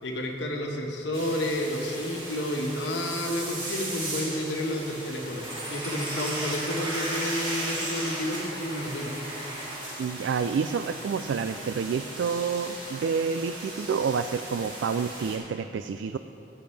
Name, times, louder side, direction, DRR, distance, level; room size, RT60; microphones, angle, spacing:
voice 1, 0.0-9.1, left 1 dB, 80° left, 1 dB, 1.4 m, -31 dB
sound 1, 1.1-15.4, right 1 dB, 30° right, 2.5 m, -36 dB
voice 2, 10.0-16.2, right 6 dB, 85° right, 9 dB, 0.3 m, -29 dB
15.5 x 8.8 x 3.3 m, 3.0 s
head